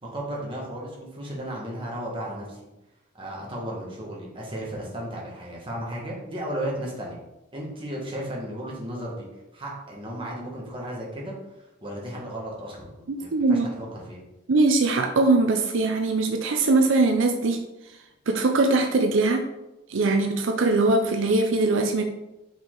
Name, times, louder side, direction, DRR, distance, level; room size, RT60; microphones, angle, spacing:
voice 1, 0.0-2.6 3.1-7.2 7.5-9.2 9.5-11.3 11.8-14.2, right 1 dB, 25° right, -4 dB, 1.7 m, -34 dB
voice 2, 13.1-13.7 14.5-17.7 18.3-19.5 19.9-22.0, right 3 dB, 80° right, 5 dB, 0.5 m, -21 dB
5.7 x 4.5 x 3.8 m, 0.96 s
head